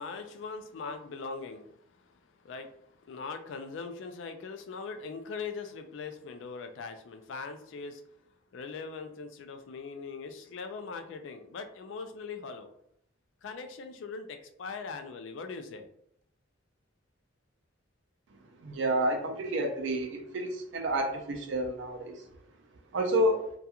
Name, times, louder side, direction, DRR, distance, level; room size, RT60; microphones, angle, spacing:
voice 1, 0.0-12.7 13.4-15.9, left 4 dB, 65° left, 7 dB, 0.3 m, -41 dB
voice 2, 18.6-22.2 22.9-23.5, right 1 dB, 65° right, 4 dB, 0.4 m, -29 dB
2.8 x 2.3 x 2.3 m, 0.71 s
head